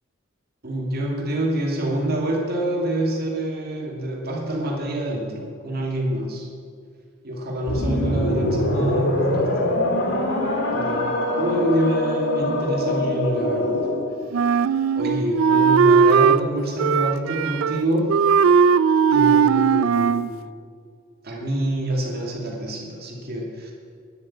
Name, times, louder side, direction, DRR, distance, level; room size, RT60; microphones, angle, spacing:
voice 1, 0.6-6.5 7.2-9.8 10.7-11.1 11.4-13.9 14.9-18.2 19.1-20.4 21.2-23.7, right 1 dB, 50° right, -1 dB, 2.4 m, -26 dB
sound 1, 7.7-14.2, left 1 dB, 60° left, 2.0 m, -23 dB
Wind instrument woodwind instrument, 14.3-16.4 16.8-17.8 18.1-20.3, right 6 dB, 85° right, 0.4 m, -18 dB
9.8 x 8.2 x 8.7 m, 2.2 s
head